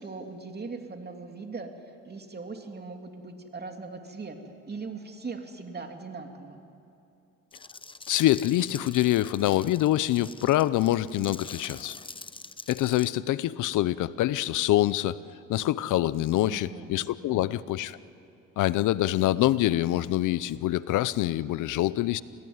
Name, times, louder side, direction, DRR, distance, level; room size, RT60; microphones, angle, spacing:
voice 1, 0.0-1.7 2.0-6.6 16.5-16.9 17.2-17.5, right 4 dB, 35° right, 4 dB, 2.8 m, -40 dB
sound 1, 7.5-13.1, left 3 dB, 15° left, 0.8 m, -45 dB
voice 2, 8.1-12.0 12.7-15.2 15.5-18.0 18.6-22.2, left 14 dB, 85° left, 18 dB, 0.7 m, -25 dB
27.5 x 18.5 x 9.5 m, 2.7 s
cardioid pair, 90°, 30 cm